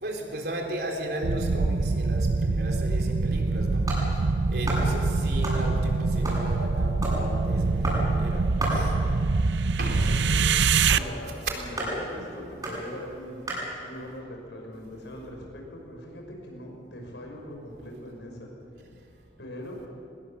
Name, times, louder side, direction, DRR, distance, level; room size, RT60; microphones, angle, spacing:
voice 1, 0.0-3.9 4.5-8.4 8.7-8.9 9.8-10.0, right 1 dB, 60° right, 0 dB, 3.9 m, -35 dB
sound 1, 1.2-11.0, right 4 dB, 75° right, 0.6 m, -24 dB
sound 2, 3.4-14.1, right 1 dB, 20° right, 7.8 m, -35 dB
voice 2, 9.9-13.4 13.8-18.5 19.4-19.8, left 1 dB, 75° left, 1 dB, 6.1 m, -41 dB
24.0 x 20.0 x 7.2 m, 2.5 s
head